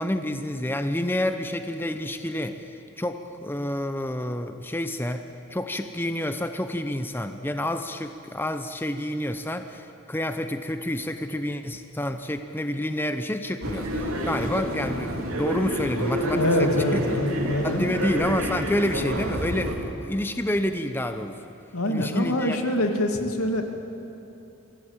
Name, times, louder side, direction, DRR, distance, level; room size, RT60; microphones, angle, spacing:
voice 1, 0.0-5.3 5.5-17.2 17.6-21.5 21.9-22.6, left 1 dB, 10° left, 8 dB, 0.6 m, -29 dB
sound 1, 13.6-19.8, equal, 75° right, 2.8 m, -28 dB
voice 2, 16.3-17.9 21.7-23.6, left 1 dB, 85° left, 4 dB, 2.2 m, -25 dB
24.0 x 16.0 x 8.9 m, 2.8 s
head